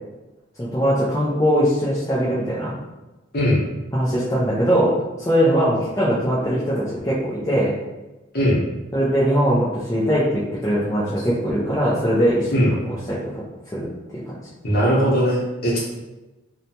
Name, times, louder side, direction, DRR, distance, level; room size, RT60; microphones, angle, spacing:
voice 1, 0.6-2.7 3.9-4.9 5.2-7.7 8.9-12.5 12.9-13.2 13.7-13.9, equal, 15° left, -9 dB, 0.4 m, -21 dB
voice 2, 14.6-15.8, equal, 50° left, -5 dB, 0.9 m, -19 dB
2.8 x 2.1 x 2.7 m, 1.1 s
head